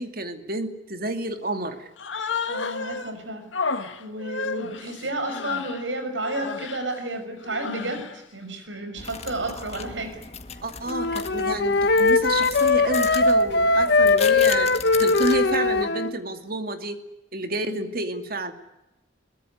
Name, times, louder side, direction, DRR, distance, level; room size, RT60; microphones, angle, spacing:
voice 1, 0.0-1.9 10.6-14.7 15.0-17.0 17.3-18.5, right 2 dB, 50° right, 7 dB, 2.6 m, -30 dB
Human voice, 2.0-3.1 3.5-5.9 6.2-6.8 7.4-8.2, left 4 dB, 85° left, 1.9 m, -31 dB
voice 2, 2.5-10.2 17.6-17.9, right 1 dB, 75° right, 8 dB, 6.1 m, -32 dB
sound 1, 9.0-15.8, left 6 dB, 35° left, 1.9 m, -37 dB
Wind instrument woodwind instrument, 10.9-16.1, left 3 dB, 60° left, 1.5 m, -20 dB
22.5 x 21.5 x 9.5 m, 0.93 s
head